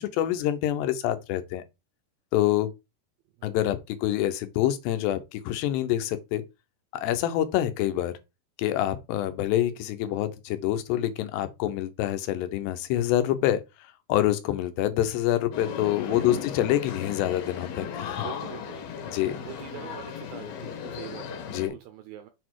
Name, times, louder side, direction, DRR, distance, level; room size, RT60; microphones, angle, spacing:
voice 1, 0.0-1.6 2.3-2.7 3.4-6.4 6.9-8.2 8.6-13.6 14.1-18.3 19.1-19.4 21.5-21.7, left 12 dB, 80° left, 2.9 m, -26 dB
sound 1, 15.5-21.7, left 7 dB, 65° left, 2.9 m, -36 dB
voice 2, 16.1-16.4 18.2-22.3, right 12 dB, 80° right, 2.1 m, -44 dB
7.2 x 4.2 x 4.6 m
omnidirectional pair, 4.9 m